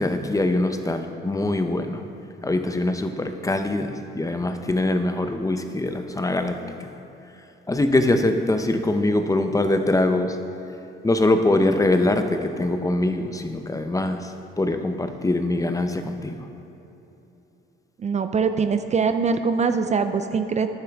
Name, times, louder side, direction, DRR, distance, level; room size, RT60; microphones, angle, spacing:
voice 1, 0.0-2.0 2.4-6.6 7.7-10.4 11.0-14.3 14.6-16.5, left 2 dB, 15° left, 7 dB, 0.7 m, -23 dB
voice 2, 18.0-20.7, right 5 dB, 35° right, 9 dB, 0.5 m, -23 dB
12.0 x 9.9 x 3.5 m, 2.9 s
cardioid pair, 90°, 20 cm